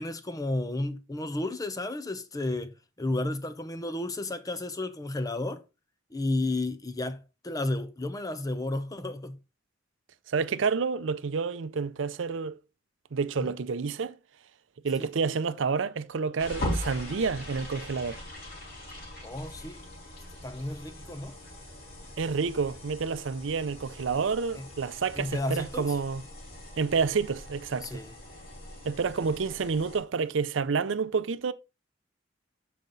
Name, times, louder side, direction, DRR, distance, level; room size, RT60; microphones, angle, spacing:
voice 1, 0.0-5.6 6.1-9.4 13.4-13.5 15.0-15.1 19.2-19.8 20.4-21.4 24.5-24.7 25.1-25.9 27.8-28.1, left 2 dB, 20° left, 0.7 m, -32 dB
voice 2, 10.3-12.6 13.1-14.1 14.8-18.2 22.2-26.2 26.8-28.0 28.8-31.5, right 5 dB, 75° right, 0.5 m, -29 dB
sound 1, 16.4-30.0, left 1 dB, 50° left, 3.3 m, -41 dB
7.4 x 5.1 x 3.9 m
head